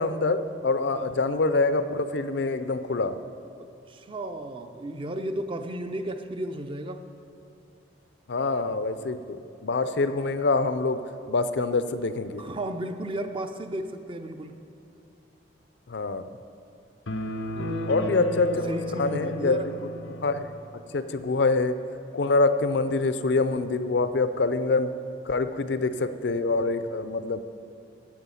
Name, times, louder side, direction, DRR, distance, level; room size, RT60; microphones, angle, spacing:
voice 1, 0.0-3.2 8.3-9.4 9.6-11.0 11.3-12.4 15.9-16.3 17.9-18.6 19.0-19.6 20.2-20.5 20.9-21.7 22.1-24.9 25.3-27.4, left 3 dB, 65° left, 11 dB, 0.5 m, -25 dB
voice 2, 3.6-7.0 12.4-14.6 17.5-19.7, right 1 dB, 30° right, 8 dB, 0.5 m, -34 dB
sound 1, 17.1-20.6, left 1 dB, 85° left, 0.8 m, -33 dB
9.5 x 7.7 x 8.3 m, 2.6 s
head